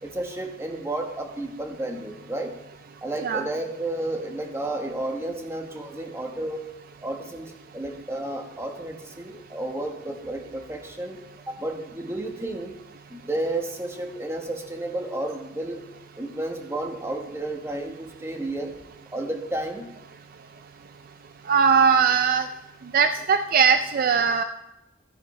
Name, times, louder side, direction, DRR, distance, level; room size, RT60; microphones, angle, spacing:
voice 1, 0.0-2.5 3.0-6.7 7.0-11.2 11.5-12.7 13.1-15.9 16.1-18.7 19.1-19.9, right 1 dB, 15° right, 3 dB, 1.2 m, -32 dB
voice 2, 21.4-22.5 22.8-24.4, right 6 dB, 50° right, 9 dB, 0.4 m, -20 dB
13.0 x 9.8 x 3.2 m, 0.90 s
head